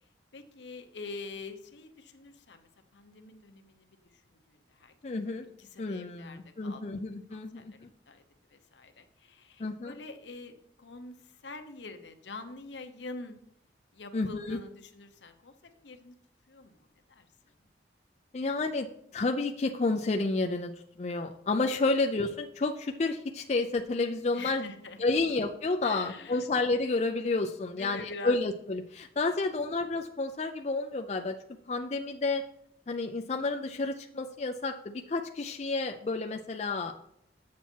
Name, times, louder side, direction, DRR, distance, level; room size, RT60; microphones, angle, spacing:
voice 1, 0.0-6.8 7.3-8.2 8.5-13.4 13.9-16.2 16.5-17.3 24.3-25.0 25.8-26.5 27.7-28.4 29.3-29.4, left 3 dB, 75° left, 7 dB, 0.9 m, -46 dB
voice 2, 5.0-5.5 5.8-7.9 9.6-9.9 14.1-14.6 18.3-18.9 19.1-20.7 21.0-24.6 25.0-31.4 31.7-32.4 32.9-36.9, left 3 dB, 35° left, 4 dB, 0.4 m, -30 dB
7.4 x 7.1 x 4.4 m, 0.73 s
head